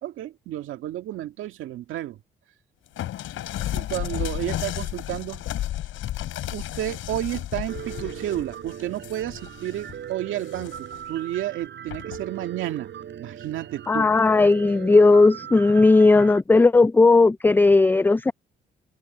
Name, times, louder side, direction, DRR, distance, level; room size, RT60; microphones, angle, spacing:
voice 1, 0.0-2.2 3.7-5.4 6.5-12.9 13.2-14.1, right 13 dB, 85° right, 2.1 m, -31 dB
sound 1, 3.0-9.9 10.4-11.0 11.9-12.2, left 13 dB, 80° left, 6.9 m, -33 dB
Piano, 7.7-16.4, right 9 dB, 65° right, 7.2 m, -39 dB
voice 2, 13.9-18.3, left 3 dB, 10° left, 0.3 m, -16 dB
cardioid pair, 90°, 20 cm